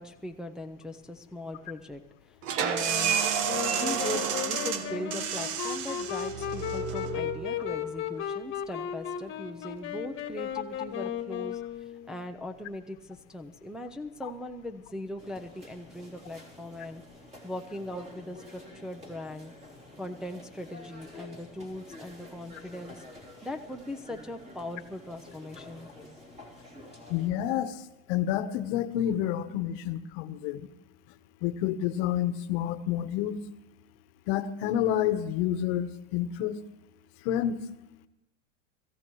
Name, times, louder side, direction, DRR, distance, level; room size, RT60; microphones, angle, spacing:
voice 1, 0.0-3.2 3.7-17.0 17.4-19.5 20.0-23.0 23.4-25.9 26.4-26.5, left 1 dB, ahead, 3 dB, 0.5 m, -40 dB
sound 1, 2.4-7.9, right 7 dB, 60° right, 1.4 m, -31 dB
Wind instrument woodwind instrument, 3.4-12.2, left 9 dB, 35° left, 1.6 m, -35 dB
sound 2, 15.2-27.3, left 1 dB, 15° right, 3.5 m, -49 dB
voice 2, 27.1-27.8 28.1-30.7 31.4-33.4 34.3-36.6 37.2-37.6, left 11 dB, 60° left, 11 dB, 1.1 m, -29 dB
24.0 x 14.5 x 3.1 m, 0.93 s
supercardioid pair, 125°, 36 cm